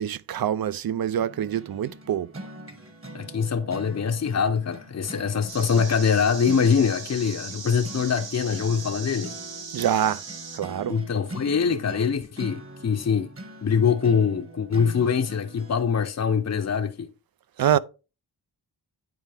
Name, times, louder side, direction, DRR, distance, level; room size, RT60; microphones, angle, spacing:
voice 1, 0.0-2.3 9.7-10.2 10.5-11.0 17.6-17.8, right 10 dB, 55° right, 0.5 m, -25 dB
sound 1, 1.2-15.8, right 1 dB, 30° right, 1.6 m, -43 dB
voice 2, 3.1-9.3 10.9-13.3 13.6-17.1, left 6 dB, 40° left, 0.6 m, -24 dB
sound 2, 5.5-10.6, right 5 dB, 80° right, 1.5 m, -39 dB
9.5 x 4.4 x 3.4 m
cardioid pair, 55°, 44 cm